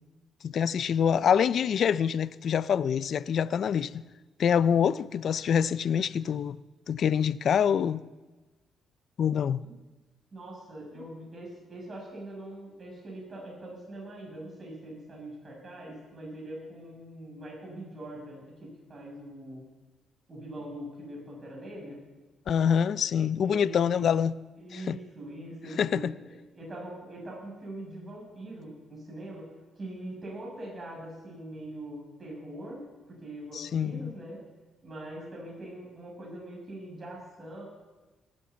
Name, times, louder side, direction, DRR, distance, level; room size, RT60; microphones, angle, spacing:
voice 1, 0.4-4.0 4.4-6.6 6.9-8.0 9.2-9.6 22.5-24.3 24.7-25.0 25.8-26.1 33.5-34.1, left 8 dB, 60° left, 0.5 m, -25 dB
voice 2, 10.3-19.6 20.3-22.0 23.4-24.0 24.6-29.5 29.8-34.4 34.8-37.6, right 1 dB, 30° right, 6.0 m, -42 dB
18.5 x 8.8 x 8.0 m
cardioid pair, 90°, 0 cm